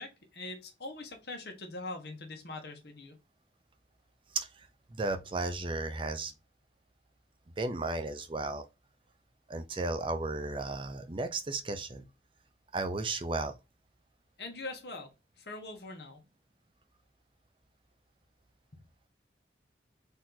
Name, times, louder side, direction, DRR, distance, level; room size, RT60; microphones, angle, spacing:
voice 1, 0.0-3.2 14.4-15.1 15.4-16.2, left 2 dB, 65° left, 1.4 m, -42 dB
voice 2, 4.3-6.3 7.6-8.7 9.5-12.1 12.7-13.5, right 3 dB, 30° right, 0.5 m, -34 dB
4.2 x 2.9 x 4.0 m
head